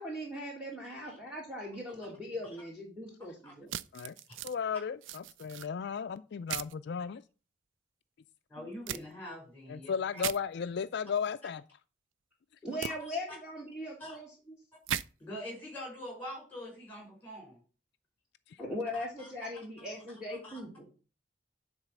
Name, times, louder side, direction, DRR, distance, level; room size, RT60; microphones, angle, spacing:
voice 1, 0.0-3.7 12.6-14.3 18.6-20.9, left 1 dB, 5° right, 1.9 m, -39 dB
sound 1, 3.7-4.5 5.0-5.7 6.5-6.7 8.9-9.0 10.2-10.4 12.8-12.9 14.9-15.0, right 10 dB, 90° right, 0.4 m, -36 dB
voice 2, 4.4-7.2 9.7-11.6 18.5-18.6, left 6 dB, 65° left, 0.4 m, -35 dB
voice 3, 8.5-10.2 12.9-13.1 14.0-14.2 15.2-17.6 18.9-19.3 19.8-19.9 20.4-20.6, equal, 10° left, 5.1 m, -44 dB
9.7 x 4.1 x 6.1 m
head